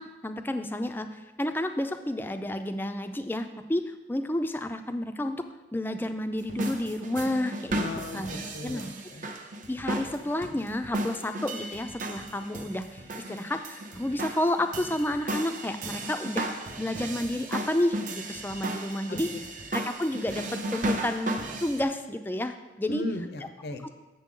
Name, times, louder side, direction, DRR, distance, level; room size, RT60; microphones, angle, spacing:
voice 1, 0.0-5.4 5.7-7.9 8.1-8.9 9.7-13.0 13.3-16.5 16.8-19.3 19.7-20.4 20.7-23.0, left 1 dB, 10° left, 8 dB, 0.4 m, -30 dB
sound 1, 6.4-21.8, right 1 dB, 45° right, 0.7 m, -35 dB
voice 2, 7.7-9.3 19.1-19.2 22.9-23.9, left 2 dB, 65° left, 7 dB, 0.6 m, -36 dB
7.4 x 6.8 x 3.7 m, 1.1 s
head